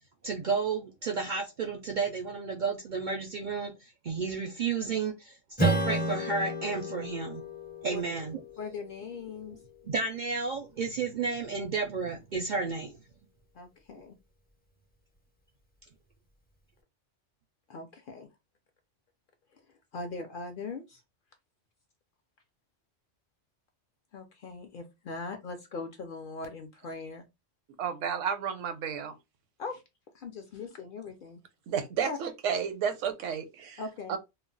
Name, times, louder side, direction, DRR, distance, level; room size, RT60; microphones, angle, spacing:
voice 1, 0.2-7.4 7.8-8.4 9.9-13.0, right 4 dB, 65° right, 0.4 m, -32 dB
Strum, 5.6-10.5, right 1 dB, 15° left, 0.3 m, -33 dB
voice 2, 8.6-9.6 13.5-14.1 17.7-18.3 19.9-21.0 24.1-27.3 29.6-29.8 30.1-31.4 32.0-32.2 33.8-34.2, left 4 dB, 60° left, 0.6 m, -40 dB
voice 3, 27.8-29.1 31.7-33.8 34.1-34.2, right 7 dB, 85° right, 0.9 m, -31 dB
2.3 x 2.1 x 3.8 m
omnidirectional pair, 1.2 m